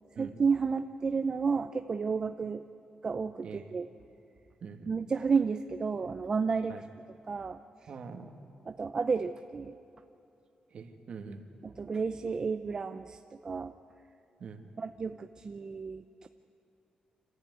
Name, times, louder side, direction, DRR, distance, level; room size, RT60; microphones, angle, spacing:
voice 1, 0.2-2.6 3.0-3.9 4.9-6.7 7.3-7.6 8.7-9.7 11.6-13.7 14.8-16.3, right 5 dB, 30° right, 8 dB, 0.5 m, -31 dB
voice 2, 3.4-3.8 4.6-5.0 6.7-6.9 7.9-8.4 10.7-11.5 14.4-14.7, right 5 dB, 50° right, 5 dB, 1.8 m, -44 dB
26.5 x 15.0 x 9.3 m, 2.8 s
wide cardioid pair, 170°, 3 cm